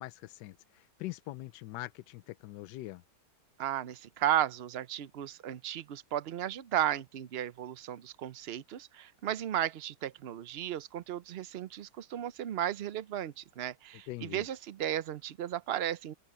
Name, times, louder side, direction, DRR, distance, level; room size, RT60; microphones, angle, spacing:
voice 1, 0.0-3.0 14.1-14.5, left 17 dB, 85° left, 1.2 m, -43 dB
voice 2, 3.6-16.1, right 11 dB, 75° right, 0.5 m, -34 dB
open air
omnidirectional pair, 1.8 m